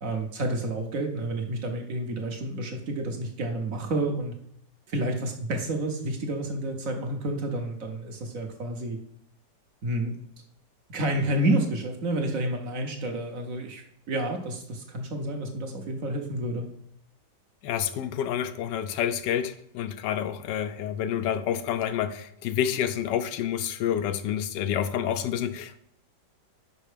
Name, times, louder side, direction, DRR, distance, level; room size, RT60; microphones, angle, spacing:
voice 1, 0.0-4.3 4.9-9.0 9.8-10.1 10.9-16.7, right 1 dB, 55° right, 3 dB, 1.2 m, -29 dB
voice 2, 17.6-25.8, left 9 dB, 80° left, 11 dB, 1.2 m, -28 dB
5.4 x 5.3 x 5.0 m, 0.69 s
omnidirectional pair, 1.9 m